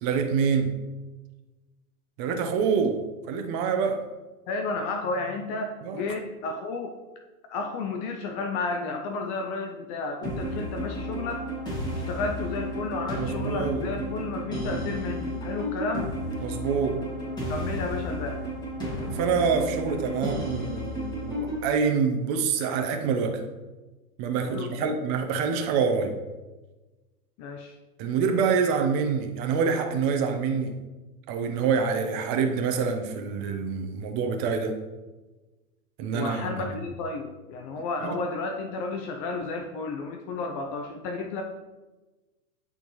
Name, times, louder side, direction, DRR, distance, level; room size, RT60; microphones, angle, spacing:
voice 1, 0.0-0.8 2.2-4.0 5.8-6.0 13.2-13.9 16.4-17.0 19.1-23.4 24.2-26.2 28.0-30.8 31.3-34.8 36.0-36.4, right 6 dB, 40° right, 0.9 m, -26 dB
voice 2, 4.5-7.0 7.5-11.4 12.1-16.1 17.5-18.5 24.4-25.0 27.4-27.7 36.1-41.4, left 3 dB, 30° left, 0.4 m, -32 dB
sound 1, 10.2-21.6, equal, 10° left, 2.2 m, -32 dB
10.5 x 3.8 x 3.1 m
hypercardioid pair, 115°, 45 cm